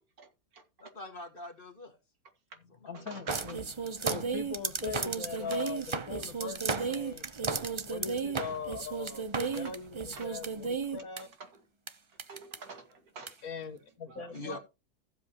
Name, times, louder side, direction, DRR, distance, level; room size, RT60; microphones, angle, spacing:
voice 1, 0.2-0.6 2.9-3.6 5.4-5.7 8.5-8.6 9.5-9.6 10.1-10.3 11.4-11.6 12.3-13.4 14.1-14.3, right 4 dB, 65° right, 2.4 m, -48 dB
voice 2, 0.8-2.0 2.8-2.9 3.5-3.7 14.3-14.6, left 1 dB, 35° left, 1.7 m, -44 dB
voice 3, 2.9-3.7 4.1-7.2 7.9-11.3 13.4-14.6, left 6 dB, 65° left, 1.6 m, -41 dB
sound 1, 3.3-11.2 11.9-12.0 12.2-12.6 13.3-13.4, right 5 dB, 50° right, 0.3 m, -34 dB
15.0 x 7.6 x 2.9 m
omnidirectional pair, 1.7 m